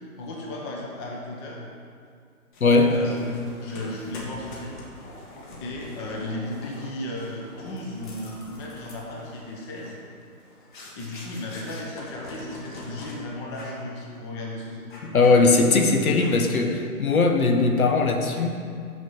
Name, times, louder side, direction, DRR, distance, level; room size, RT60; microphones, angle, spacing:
voice 1, 0.0-1.7 2.9-5.3 5.6-10.0 10.9-14.9, left 1 dB, 20° left, -2 dB, 0.9 m, -35 dB
sound 1, 2.5-13.2 13.5-13.9 14.2-14.4 14.9-15.8 16.2-16.6, left 1 dB, 35° left, 1.6 m, -44 dB
voice 2, 2.6-3.0 15.0-18.5, left 3 dB, 70° left, 4 dB, 1.2 m, -19 dB
6.3 x 6.1 x 7.2 m, 2.3 s
figure-of-eight pair, 135°, 44 cm